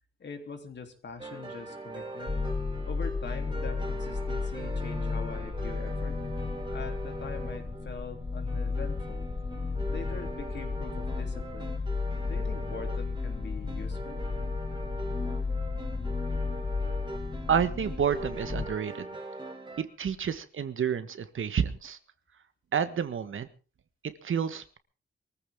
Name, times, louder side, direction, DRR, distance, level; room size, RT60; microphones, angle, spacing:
voice 1, 0.2-2.4 2.9-6.2 6.7-9.3 9.9-11.8 12.3-14.2, left 5 dB, 55° left, 5 dB, 3.4 m, -43 dB
sound 1, 1.2-19.8, right 2 dB, 20° right, 3.3 m, -41 dB
sound 2, 2.3-18.6, left 4 dB, 25° left, 1.2 m, -33 dB
voice 2, 17.5-19.1 19.8-22.0 22.7-23.5 24.2-24.8, right 7 dB, 70° right, 11 dB, 1.5 m, -29 dB
22.5 x 14.5 x 3.8 m, 0.35 s
wide cardioid pair, 115°, 21 cm